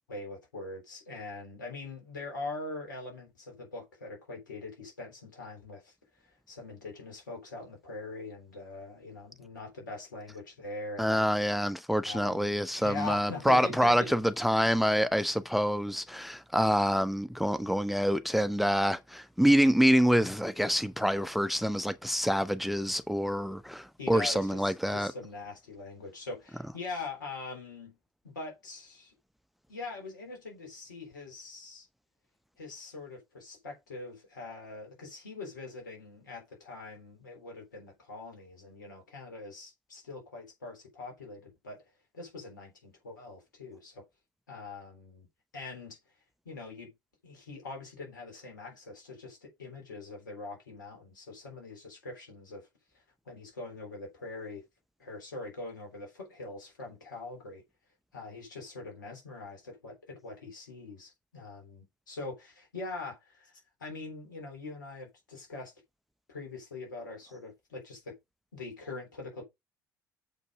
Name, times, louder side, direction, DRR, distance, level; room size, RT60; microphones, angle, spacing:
voice 1, 0.1-5.9 6.2-11.3 12.1-14.1 24.0-28.0 28.2-29.1 29.7-31.9 32.6-41.8 42.1-44.0 44.5-45.3 45.5-46.0 46.5-46.9 47.2-52.7 52.9-54.6 55.0-57.6 58.1-63.5 63.8-65.7 66.3-68.2 68.5-69.5, left 3 dB, 80° left, 3.6 m, -43 dB
voice 2, 11.0-25.1, equal, ahead, 0.8 m, -26 dB
7.3 x 5.3 x 4.9 m
figure-of-eight pair, 55°, 10 cm